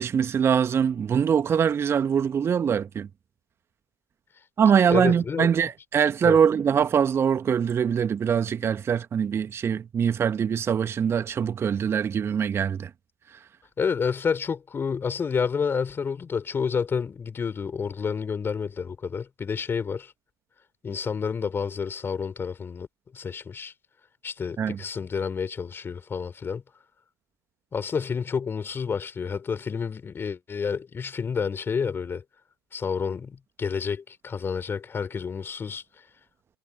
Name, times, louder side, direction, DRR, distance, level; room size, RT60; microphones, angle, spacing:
voice 1, 0.0-3.1 4.6-12.9 13.3-13.4 24.6-24.8, right 7 dB, 20° right, 1.5 m, -23 dB
voice 2, 4.9-5.5 6.2-6.4 13.8-20.1 20.8-22.9 23.1-23.7 24.2-26.6 27.7-32.2 32.7-35.8, left 6 dB, 20° left, 4.6 m, -29 dB
figure-of-eight pair, 90°, 12 cm